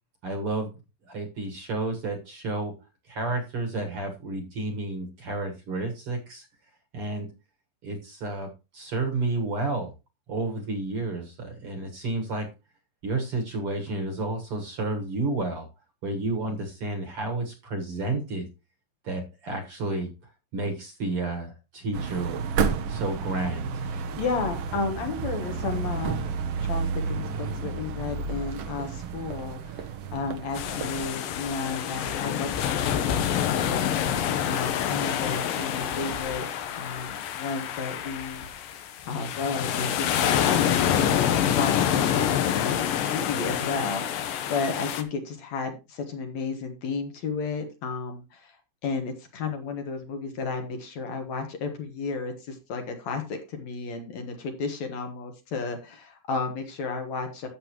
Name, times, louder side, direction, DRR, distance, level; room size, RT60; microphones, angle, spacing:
voice 1, 0.2-0.7 1.1-2.7 3.1-6.5 6.9-7.3 7.8-9.9 10.3-12.5 13.0-15.7 16.0-18.5 19.0-20.1 20.5-22.5 22.9-23.8, right 2 dB, 50° right, 3 dB, 2.0 m, -31 dB
sound 1, 21.9-31.1, right 5 dB, 75° right, 1.3 m, -31 dB
voice 2, 23.9-26.2 26.6-36.5 36.8-38.7 39.0-40.5 40.9-42.4 42.9-48.6 48.8-57.5, left 4 dB, 60° left, 5 dB, 2.4 m, -33 dB
sound 2, 30.6-45.0, left 9 dB, 85° left, 2.7 m, -27 dB
11.5 x 7.8 x 3.0 m, 0.27 s
omnidirectional pair, 3.8 m